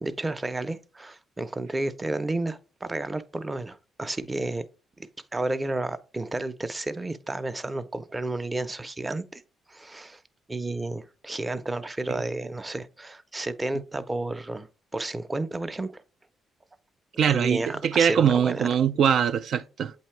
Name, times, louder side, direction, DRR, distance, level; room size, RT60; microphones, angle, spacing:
voice 1, 0.0-4.6 5.0-9.4 9.7-10.2 10.5-14.7 14.9-16.0 17.3-18.7, right 2 dB, 20° right, 0.6 m, -31 dB
voice 2, 17.2-19.9, right 8 dB, 65° right, 0.3 m, -22 dB
8.2 x 2.8 x 4.4 m
cardioid pair, 90°, 0 cm